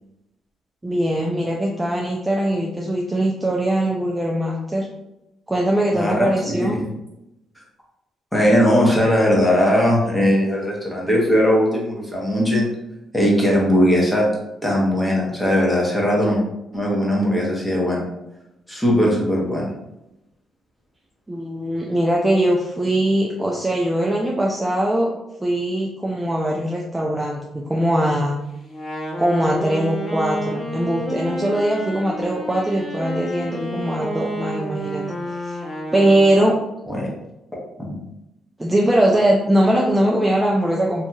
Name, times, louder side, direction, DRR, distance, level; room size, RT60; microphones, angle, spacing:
voice 1, 0.8-4.9 5.5-6.8 21.3-25.1 25.4-28.4 29.2-35.6 35.9-36.6 38.6-41.1, right 1 dB, 15° right, -2 dB, 0.4 m, -21 dB
voice 2, 5.9-6.7 8.3-12.7 13.1-14.3 14.6-16.4 16.7-18.0 18.7-19.7 36.9-37.1 37.8-38.0, equal, 10° left, -3 dB, 0.9 m, -19 dB
Wind instrument woodwind instrument, 28.7-36.6, equal, 40° left, 0.8 m, -30 dB
2.8 x 2.7 x 2.3 m, 0.88 s
cardioid pair, 90°, 0 cm